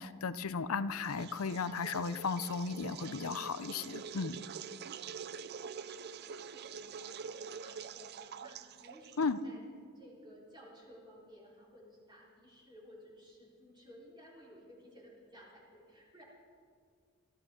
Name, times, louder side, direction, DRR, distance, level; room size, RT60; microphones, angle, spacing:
voice 1, 0.0-4.4 9.2-9.4, left 5 dB, 80° left, 14 dB, 0.6 m, -35 dB
sound 1, 1.0-9.6, right 6 dB, 50° right, 0.5 m, -46 dB
voice 2, 4.2-9.6 9.9-16.2, equal, 20° right, -5 dB, 4.0 m, -57 dB
24.5 x 13.5 x 3.7 m, 2.1 s
head